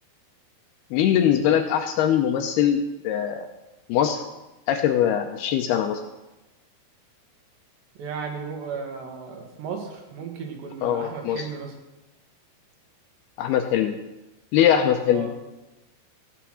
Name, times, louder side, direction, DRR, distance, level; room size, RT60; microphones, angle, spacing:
voice 1, 0.9-3.5 3.9-4.2 4.7-6.0 10.8-11.5 13.4-14.0 14.5-15.3, left 9 dB, 80° left, 5 dB, 2.4 m, -22 dB
voice 2, 8.0-11.8 15.1-15.3, right 5 dB, 70° right, 3 dB, 3.9 m, -35 dB
15.0 x 9.2 x 6.3 m, 1.0 s
omnidirectional pair, 5.2 m